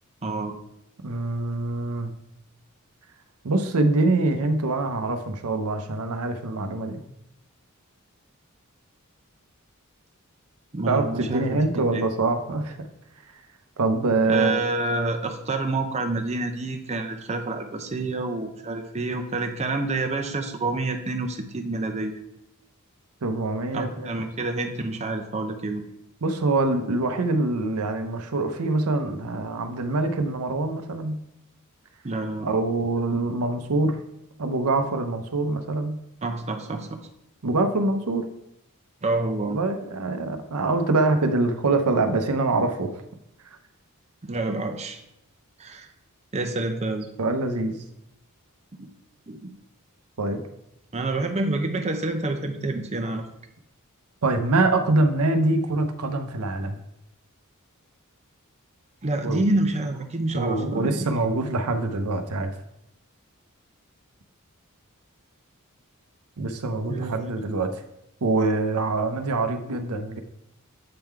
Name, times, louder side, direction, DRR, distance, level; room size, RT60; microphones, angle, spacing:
voice 1, 0.2-0.6 10.7-11.5 11.7-12.0 14.3-22.2 23.7-25.8 32.0-32.5 36.2-37.0 39.0-39.6 44.2-45.0 45.6-45.9 46.3-47.1 48.8-48.9 49.3-49.5 50.9-53.3 59.0-61.1 66.9-67.3, right 2 dB, 30° right, 5 dB, 0.7 m, -28 dB
voice 2, 1.0-2.1 3.4-7.0 10.9-11.0 11.3-12.9 13.8-14.6 23.2-24.1 26.2-31.2 32.4-34.0 34.4-36.0 37.4-38.2 39.5-43.0 47.2-47.8 50.2-50.4 54.2-56.8 59.2-59.4 60.3-62.5 66.4-67.7 68.2-70.2, right 2 dB, 85° right, 7 dB, 0.7 m, -24 dB
7.7 x 3.7 x 4.5 m, 0.82 s
head